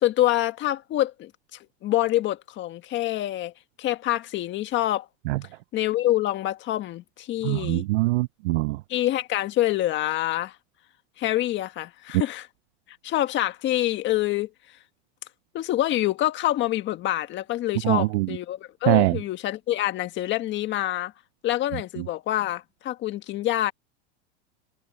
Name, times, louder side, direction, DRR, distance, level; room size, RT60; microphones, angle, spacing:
voice 1, 0.0-3.5 3.8-5.1 5.7-7.9 8.9-10.5 11.2-12.5 13.0-14.5 15.5-21.1 21.4-23.7, left 14 dB, 35° left, 1.6 m, -26 dB
voice 2, 7.4-8.8 17.8-18.3 18.9-19.2, right 20 dB, 90° right, 0.5 m, -22 dB
supercardioid pair, 150°, 33 cm